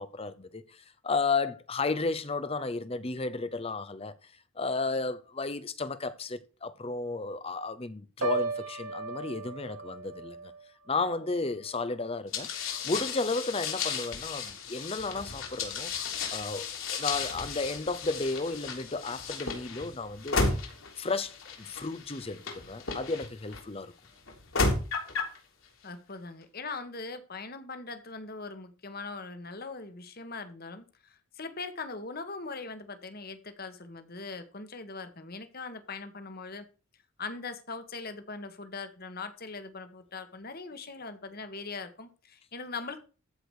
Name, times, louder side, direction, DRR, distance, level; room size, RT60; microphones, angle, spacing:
voice 1, 0.0-10.5 10.9-15.9 16.3-20.6 21.0-23.9, left 3 dB, 25° left, 0.7 m, -33 dB
Piano, 8.2-12.2 12.6-12.9, right 3 dB, 80° right, 2.8 m, -37 dB
sound 1, 12.3-23.6 24.3-25.4, left 4 dB, 70° left, 3.3 m, -34 dB
voice 2, 25.8-36.7 37.2-43.0, left 3 dB, 45° left, 1.5 m, -41 dB
14.5 x 5.0 x 6.5 m
head